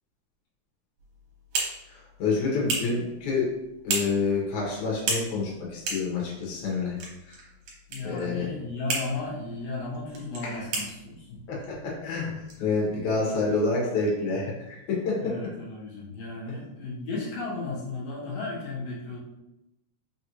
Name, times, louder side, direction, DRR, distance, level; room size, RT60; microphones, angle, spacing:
sound 1, 1.0-13.4, right 3 dB, 70° right, 2.2 m, -36 dB
voice 1, 1.9-3.5 3.8-7.0 7.3-7.4 8.0-8.5 10.4-10.6 11.5-15.3, left 4 dB, 80° left, -4 dB, 2.5 m, -28 dB
voice 2, 7.9-11.4 12.6-12.7 15.2-19.2, left 3 dB, 65° left, -5 dB, 2.0 m, -35 dB
5.2 x 2.5 x 2.9 m, 0.91 s
omnidirectional pair, 3.4 m